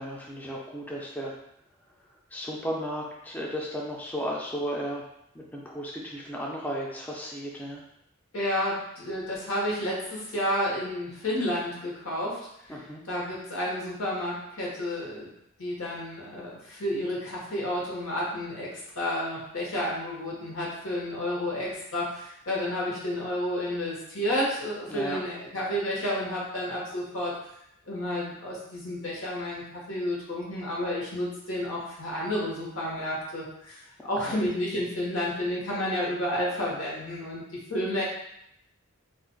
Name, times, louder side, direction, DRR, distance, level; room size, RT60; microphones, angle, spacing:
voice 1, 0.0-1.3 2.3-5.0 5.3-7.8 12.7-13.0 24.9-25.2 34.3-34.4, equal, 10° left, -2 dB, 0.3 m, -34 dB
voice 2, 8.3-12.4 12.7-12.8 13.0-15.3 15.6-27.3 27.9-38.0, left 1 dB, 85° left, -4 dB, 1.0 m, -31 dB
2.4 x 2.1 x 3.8 m, 0.77 s
head